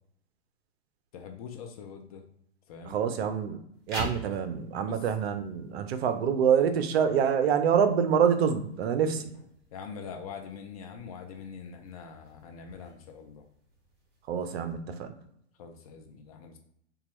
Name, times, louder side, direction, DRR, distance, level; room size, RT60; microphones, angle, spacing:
voice 1, 1.1-2.2 2.7-3.0 4.8-5.0 9.7-13.5 15.6-16.6, left 6 dB, 35° left, 5 dB, 0.4 m, -43 dB
voice 2, 2.9-3.6 3.9-9.2 14.3-15.1, right 7 dB, 55° right, 9 dB, 0.6 m, -26 dB
sound 1, 3.7-14.7, equal, 30° right, 1.3 m, -47 dB
4.0 x 2.3 x 3.1 m, 0.72 s
hypercardioid pair, 120°, 37 cm